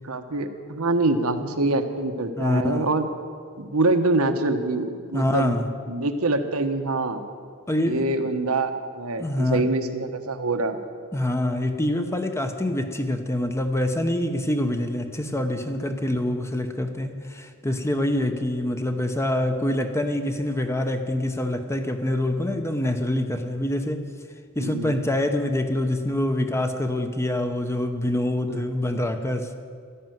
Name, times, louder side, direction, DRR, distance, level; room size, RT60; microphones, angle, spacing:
voice 1, 0.0-3.1 3.6-5.5 5.9-7.2 7.8-10.8 24.6-25.0 28.5-28.6, right 2 dB, 80° right, 8 dB, 1.2 m, -25 dB
voice 2, 2.4-2.9 5.1-5.7 7.7-8.1 9.2-9.6 11.1-24.1 24.6-29.5, left 1 dB, 15° left, 7 dB, 0.8 m, -25 dB
13.0 x 11.5 x 9.3 m, 2.1 s
head